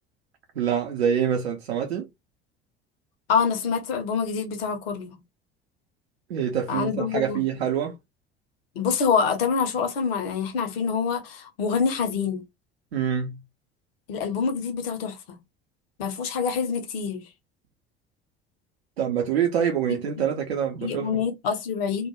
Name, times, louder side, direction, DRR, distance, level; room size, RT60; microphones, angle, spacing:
voice 1, 0.6-2.1 6.3-7.9 12.9-13.4 19.0-21.1, right 8 dB, 75° right, 0.6 m, -25 dB
voice 2, 3.3-5.2 6.7-7.4 8.8-12.4 14.1-15.4 16.0-17.3 19.9-20.0 20.8-22.1, left 6 dB, 65° left, 0.8 m, -26 dB
2.3 x 2.2 x 2.8 m
figure-of-eight pair, 65°, 32 cm